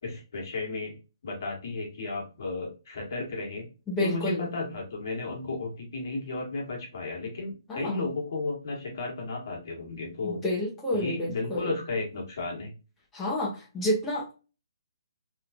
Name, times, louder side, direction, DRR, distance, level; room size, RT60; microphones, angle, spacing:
voice 1, 0.0-0.9 1.2-3.7 4.0-10.4 10.9-12.7, left 3 dB, 45° left, -1 dB, 1.5 m, -34 dB
voice 2, 3.9-4.5 7.7-8.1 10.2-11.7 13.1-14.3, left 1 dB, 10° left, -6 dB, 0.9 m, -29 dB
3.1 x 3.0 x 2.4 m, 0.32 s
figure-of-eight pair, 135°, 2 cm